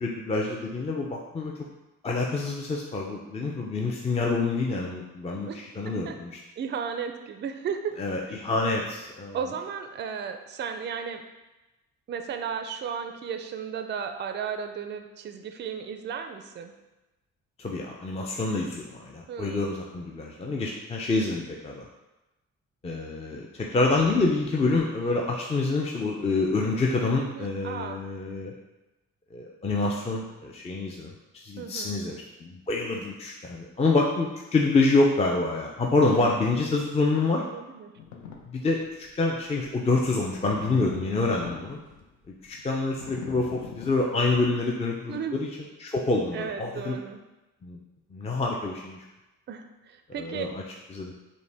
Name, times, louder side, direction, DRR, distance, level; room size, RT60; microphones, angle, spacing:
voice 1, 0.0-1.5 2.0-6.4 8.0-9.4 17.6-21.8 22.8-28.5 29.3-37.4 38.5-41.8 42.4-45.5 45.8-47.0 47.6-47.8 48.1-49.0 50.2-50.6 50.9-51.1, left 3 dB, 20° left, -1 dB, 0.4 m, -27 dB
voice 2, 5.8-6.2 6.6-8.0 8.3-8.4 9.3-11.2 12.1-16.7 19.3-19.6 27.3-28.0 31.6-32.0 36.1-36.3 37.4-37.9 45.1-45.4 46.3-47.2 49.5-50.5, right 7 dB, 35° right, 7 dB, 0.4 m, -34 dB
sound 1, 38.0-38.4 38.8-39.1 39.6-44.5, left 6 dB, 65° left, 0.7 m, -40 dB
5.0 x 2.2 x 3.3 m, 1.0 s
cardioid pair, 90°, 30 cm